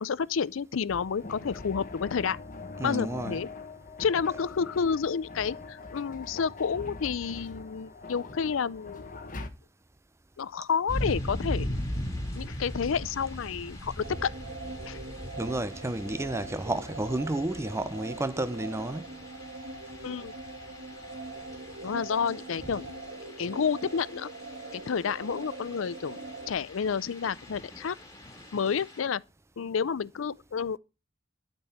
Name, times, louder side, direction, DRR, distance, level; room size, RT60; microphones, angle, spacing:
voice 1, 0.0-2.4 2.8-3.5 4.0-9.1 10.4-11.8 12.3-14.3 14.9-15.0 20.0-20.3 21.8-24.3 24.7-26.2 26.5-28.0 28.5-29.2 29.6-30.8, left 6 dB, 85° left, 0.5 m, -30 dB
sound 1, 0.9-9.5, left 3 dB, 45° left, 1.2 m, -43 dB
voice 2, 2.8-3.4 15.4-19.1, right 1 dB, 15° right, 0.6 m, -31 dB
sound 2, 10.9-29.0, equal, 15° left, 3.3 m, -40 dB
sound 3, 14.0-26.5, right 3 dB, 60° right, 1.5 m, -42 dB
12.5 x 4.6 x 8.5 m
head